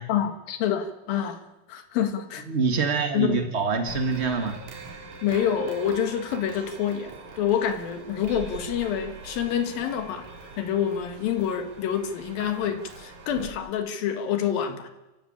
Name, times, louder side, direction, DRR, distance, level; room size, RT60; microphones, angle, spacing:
voice 1, 0.1-1.4 1.7-2.4 3.1-3.5 5.2-10.3 10.6-14.9, left 9 dB, 75° left, 8 dB, 3.3 m, -27 dB
voice 2, 2.5-4.6, right 4 dB, 80° right, 5 dB, 0.6 m, -25 dB
sound 1, 3.9-13.5, right 4 dB, 55° right, 3.8 m, -43 dB
29.5 x 14.0 x 8.7 m, 1.1 s
omnidirectional pair, 4.2 m